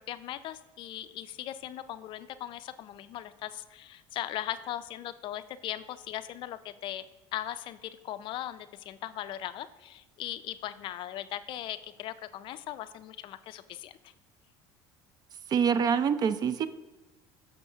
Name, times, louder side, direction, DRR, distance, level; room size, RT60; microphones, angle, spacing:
voice 1, 0.0-7.1 7.3-14.1, left 12 dB, 55° left, 13 dB, 0.4 m, -39 dB
voice 2, 15.5-16.7, right 7 dB, 40° right, 13 dB, 0.4 m, -25 dB
6.9 x 6.5 x 2.7 m, 1.1 s
supercardioid pair, 100°, 10 cm